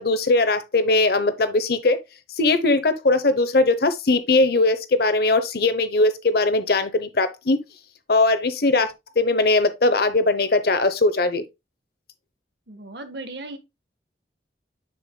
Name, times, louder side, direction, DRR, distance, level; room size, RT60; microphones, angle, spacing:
voice 1, 0.0-2.0 2.4-7.6 8.1-11.4, left 2 dB, 60° left, 0.8 m, -20 dB
voice 2, 12.7-13.6, right 2 dB, 65° right, 1.2 m, -36 dB
7.0 x 6.7 x 2.2 m
head